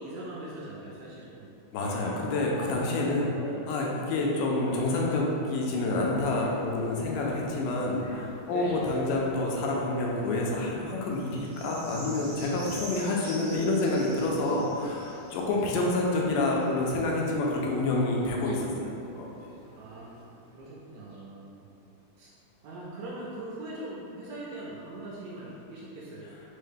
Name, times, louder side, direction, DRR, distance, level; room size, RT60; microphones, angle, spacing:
voice 1, 0.0-1.5 8.4-8.9 15.5-15.6 19.7-21.7 22.2-22.3 22.6-26.3, right 1 dB, 80° right, -6 dB, 1.9 m, -41 dB
voice 2, 1.7-19.5, left 2 dB, 80° left, -2 dB, 2.1 m, -28 dB
Bark, 1.8-3.9 4.6-5.3 5.6-5.9 6.2-6.6 8.0-8.3 8.8-8.9 9.2-9.7, equal, 65° left, 1.2 m, -46 dB
sound 1, 4.7-20.5 21.1-21.2, right 1 dB, 65° right, 1.2 m, -49 dB
5.4 x 2.1 x 3.3 m, 2.8 s
omnidirectional pair, 3.9 m